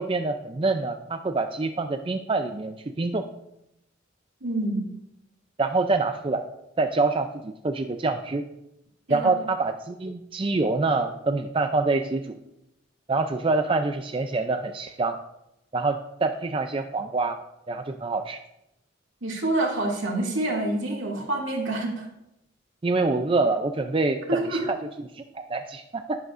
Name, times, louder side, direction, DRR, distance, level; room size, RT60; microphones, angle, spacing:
voice 1, 0.0-3.3 5.6-6.4 6.8-8.4 9.1-12.4 13.1-15.1 15.7-17.4 17.7-18.4 22.8-24.8 25.1-26.2, right 3 dB, 25° right, 6 dB, 0.4 m, -26 dB
voice 2, 4.4-4.9 9.1-9.3 19.2-22.1 24.3-24.6, right 2 dB, 70° right, -2 dB, 2.4 m, -27 dB
11.0 x 10.5 x 2.6 m, 0.84 s
head